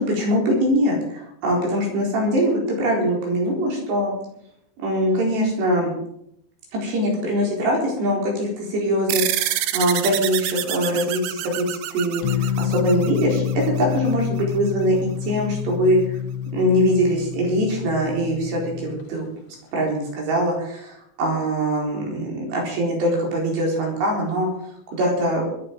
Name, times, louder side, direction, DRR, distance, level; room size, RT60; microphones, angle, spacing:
voice 1, 0.0-4.1 4.8-5.9 6.7-12.2 12.6-16.0 16.5-19.3 19.7-24.5 24.9-25.5, equal, 65° right, -1 dB, 6.3 m, -22 dB
sound 1, 9.1-14.0, right 13 dB, 85° right, 2.1 m, -27 dB
sound 2, 12.2-19.1, left 9 dB, 75° left, 2.8 m, -28 dB
21.5 x 9.8 x 5.3 m, 0.76 s
omnidirectional pair, 5.3 m